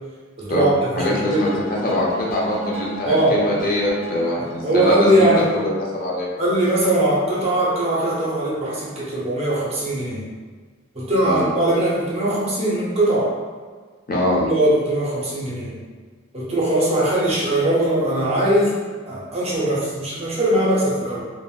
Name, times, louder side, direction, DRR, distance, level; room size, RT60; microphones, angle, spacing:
voice 1, 0.4-1.4 3.0-3.4 4.6-5.5 6.4-10.3 10.9-13.3 14.4-15.8 16.3-18.7 19.1-21.2, right 1 dB, 30° right, -6 dB, 0.6 m, -20 dB
voice 2, 0.9-1.5 1.8-6.3 11.2-11.5 14.1-14.5, left 1 dB, 45° left, -4 dB, 0.5 m, -23 dB
sound 1, 1.0-6.1, equal, 10° left, 1.1 m, -33 dB
3.4 x 2.1 x 2.3 m, 1.5 s
head